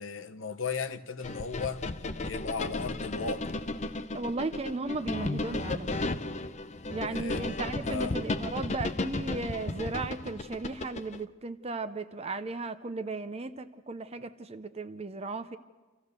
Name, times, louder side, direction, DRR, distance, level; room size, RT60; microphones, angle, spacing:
voice 1, 0.0-1.8 2.2-3.6 7.0-7.5 7.8-8.2, left 5 dB, 65° left, 1.0 m, -36 dB
sound 1, 1.2-11.2, left 2 dB, 35° left, 0.6 m, -34 dB
voice 2, 4.1-6.0 6.9-15.6, right 3 dB, 30° right, 0.6 m, -36 dB
28.0 x 15.0 x 6.7 m
head